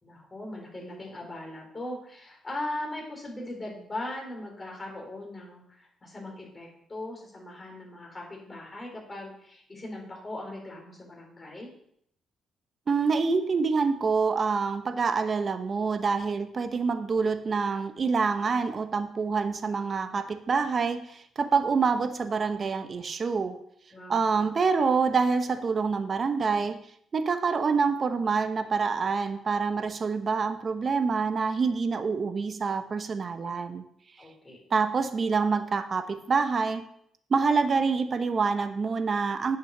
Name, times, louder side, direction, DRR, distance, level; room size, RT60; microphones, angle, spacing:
voice 1, 0.0-11.7 23.9-24.6 34.2-34.6, left 1 dB, 25° left, -1 dB, 4.2 m, -39 dB
voice 2, 12.9-23.6 24.1-26.8 27.1-33.8 34.7-36.8 37.3-39.6, right 5 dB, 40° right, 9 dB, 0.9 m, -26 dB
8.7 x 5.9 x 6.6 m, 0.70 s
cardioid pair, 90°, 0 cm